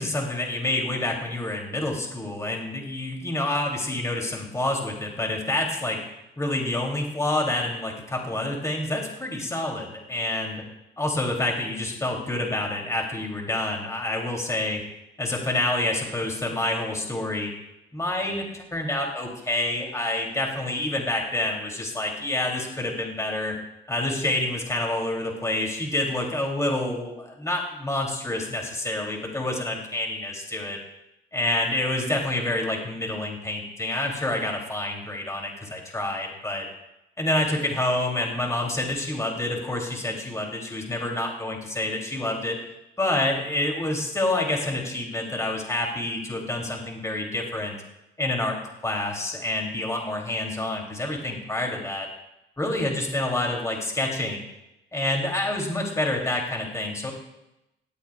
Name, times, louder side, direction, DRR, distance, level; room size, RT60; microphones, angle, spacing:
voice 1, 0.0-6.0 6.4-10.6 11.0-14.8 15.2-17.5 17.9-23.6 23.9-30.8 31.3-36.6 37.2-42.6 43.0-47.8 48.2-48.6 48.8-52.1 52.6-54.5 54.9-57.1, left 1 dB, 15° left, 0 dB, 2.8 m, -28 dB
18.0 x 13.0 x 2.4 m, 0.90 s
cardioid pair, 90°, 20 cm